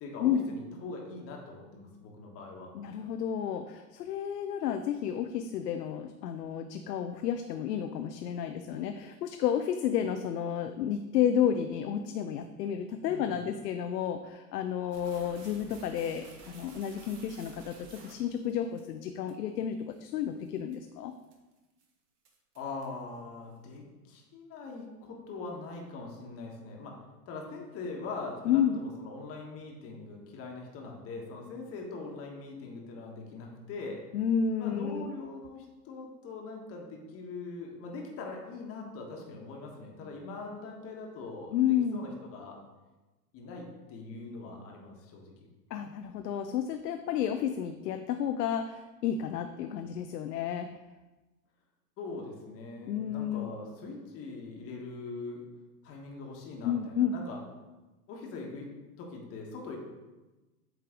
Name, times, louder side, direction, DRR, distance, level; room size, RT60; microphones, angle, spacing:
voice 1, 0.0-2.7 13.1-13.4 22.5-27.0 27.3-34.0 34.6-42.6 43.3-45.5 52.0-55.4 55.8-57.4 58.1-58.7 59.0-59.8, left 3 dB, 30° left, 0 dB, 1.2 m, -42 dB
voice 2, 2.7-21.1 28.5-28.8 34.1-35.1 41.5-42.0 45.7-50.7 52.9-53.5 56.6-57.2, left 9 dB, 75° left, 7 dB, 0.6 m, -31 dB
sound 1, 14.9-18.8 19.3-19.4 19.9-20.1 20.5-20.8 21.2-21.5 21.8-21.9 22.3-23.0, right 3 dB, 75° right, 1.4 m, -52 dB
8.0 x 3.3 x 3.7 m, 1.1 s
hypercardioid pair, 115°, 48 cm